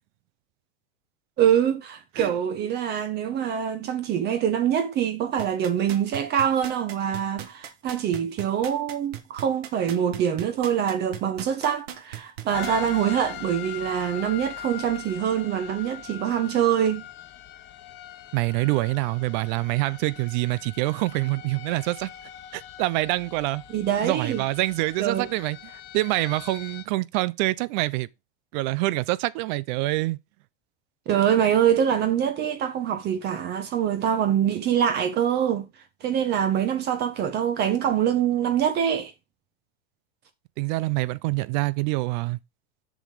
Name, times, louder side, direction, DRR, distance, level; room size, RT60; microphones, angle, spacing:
voice 1, 1.4-17.0 23.7-24.4 25.0-25.3 31.1-35.7 36.0-39.1, right 9 dB, 35° right, 1.0 m, -24 dB
sound 1, 5.4-12.9 13.4-13.5, right 11 dB, 80° right, 1.5 m, -38 dB
sound 2, 12.5-26.8, left 12 dB, 35° left, 1.2 m, -41 dB
voice 2, 18.3-22.1 22.5-23.6 24.0-28.1 28.5-30.2 40.6-42.4, right 20 dB, 50° right, 0.6 m, -26 dB
7.3 x 5.3 x 4.9 m
hypercardioid pair, 125°, 31 cm